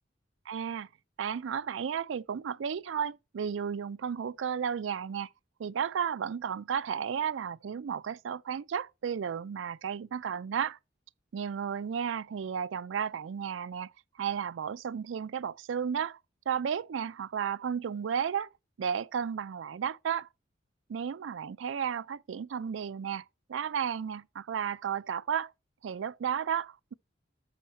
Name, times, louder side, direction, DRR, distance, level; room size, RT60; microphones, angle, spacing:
voice 1, 0.5-0.9 1.2-5.3 5.6-10.8 11.3-13.9 14.2-16.2 16.5-18.5 18.8-20.3 20.9-23.2 23.5-25.5 25.8-26.9, right 7 dB, 85° right, 0.4 m, -33 dB
7.0 x 6.4 x 4.2 m
head